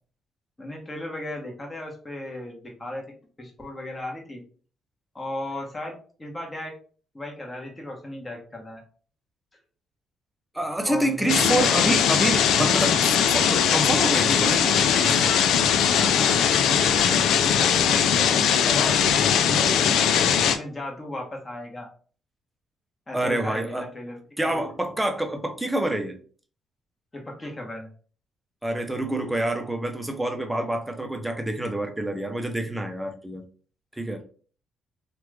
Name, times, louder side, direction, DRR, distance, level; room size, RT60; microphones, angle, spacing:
voice 1, 0.6-3.0 3.4-4.4 5.1-6.7 7.1-8.8 10.8-11.7 15.6-16.4 16.7-19.0 19.4-20.0 20.4-21.9 23.1-24.2 24.4-24.6 27.1-27.9, left 1 dB, 20° left, 0 dB, 1.2 m, -35 dB
voice 2, 10.5-15.4 23.1-23.9 24.4-26.2 28.6-33.4 33.9-34.2, right 1 dB, 10° right, 4 dB, 0.7 m, -27 dB
sound 1, 11.3-20.6, left 8 dB, 80° left, 0.3 m, -20 dB
3.0 x 2.4 x 3.3 m, 0.42 s
cardioid pair, 90°, 0 cm